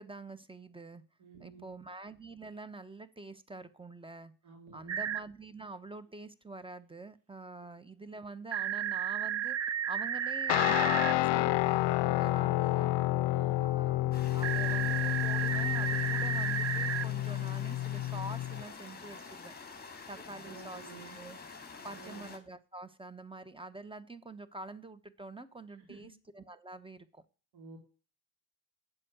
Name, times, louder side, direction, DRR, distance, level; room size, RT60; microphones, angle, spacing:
voice 1, 0.0-1.0 1.4-4.3 4.7-9.6 9.9-12.9 13.6-19.5 20.1-21.4 21.8-27.2, right 2 dB, 10° right, 15 dB, 1.1 m, -46 dB
voice 2, 1.2-1.8 4.4-5.0 7.6-7.7 13.2-13.7 20.2-21.2 21.9-22.3 25.8-26.1 27.5-27.8, right 4 dB, 75° right, 1 dB, 3.0 m, -52 dB
sound 1, 4.9-5.2 8.5-11.1 14.4-17.0, right 9 dB, 30° right, 0.6 m, -33 dB
Guitar, 10.5-18.6, left 17 dB, 60° left, 0.5 m, -30 dB
sound 2, 14.1-22.4, left 4 dB, 20° left, 3.1 m, -48 dB
8.8 x 7.6 x 8.1 m, 0.38 s
cardioid pair, 80°, 49 cm